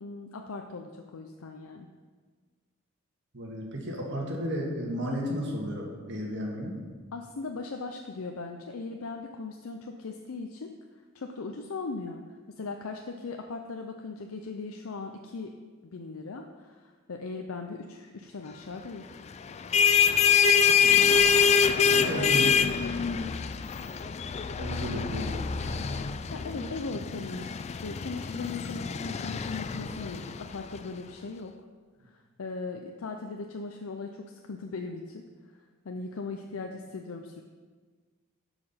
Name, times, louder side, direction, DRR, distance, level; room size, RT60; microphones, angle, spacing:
voice 1, 0.0-1.9 7.1-10.7 11.1-12.2 12.5-15.6 15.9-19.1 21.7-23.4 26.3-31.5 32.1-35.2 35.8-37.4, left 3 dB, 85° left, 4 dB, 0.6 m, -39 dB
voice 2, 3.3-6.8 20.8-21.1 21.9-22.5 24.6-26.0, equal, 60° right, -1 dB, 1.9 m, -34 dB
sound 1, 19.5-30.8, left 6 dB, 30° left, 0.3 m, -25 dB
11.5 x 4.9 x 5.6 m, 1.5 s
head